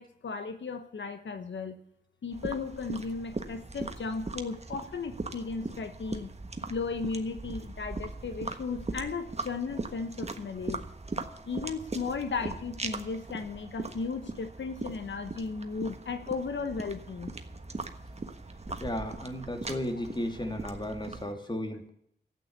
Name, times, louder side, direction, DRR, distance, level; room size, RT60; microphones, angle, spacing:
voice 1, 0.0-1.8 2.2-6.3 6.7-10.8 11.4-17.3 20.0-20.1, left 4 dB, 90° left, 8 dB, 1.2 m, -35 dB
sound 1, 2.3-21.3, right 3 dB, 35° right, 1.4 m, -40 dB
voice 2, 18.8-21.9, left 1 dB, 25° left, 5 dB, 2.7 m, -34 dB
13.0 x 9.0 x 8.1 m, 0.69 s
wide cardioid pair, 80°, 19 cm